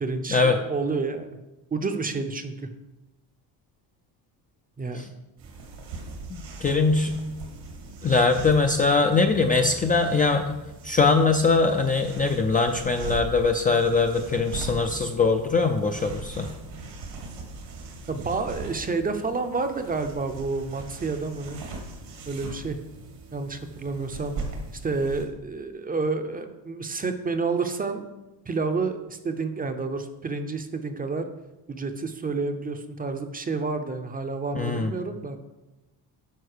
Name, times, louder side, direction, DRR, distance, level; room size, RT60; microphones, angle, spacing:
voice 1, 0.0-1.4 1.7-2.7 4.8-5.0 18.1-21.6 22.3-22.8 23.3-24.4 24.8-28.1 28.5-31.3 31.7-35.4, right 4 dB, 20° right, 7 dB, 0.6 m, -29 dB
sound 1, 5.4-25.3, right 3 dB, 90° right, 2.8 m, -40 dB
voice 2, 6.3-7.1 8.0-10.6 10.8-16.5 34.5-34.9, left 4 dB, 20° left, 4 dB, 0.4 m, -22 dB
9.3 x 5.4 x 6.6 m, 1.0 s
cardioid pair, 155°, 43 cm